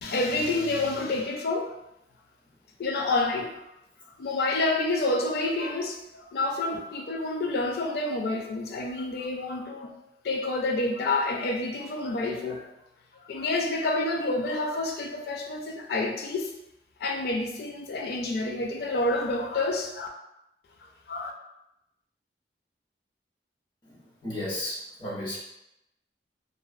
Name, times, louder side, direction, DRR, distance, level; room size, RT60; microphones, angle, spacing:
voice 1, 0.0-1.7 2.8-3.7 4.2-9.9 10.2-12.7 13.1-16.5 17.0-20.1 21.1-21.3, left 2 dB, 60° left, 2 dB, 0.4 m, -28 dB
voice 2, 23.9-25.4, left 1 dB, 25° left, -7 dB, 0.7 m, -34 dB
2.5 x 2.2 x 2.2 m, 0.87 s
head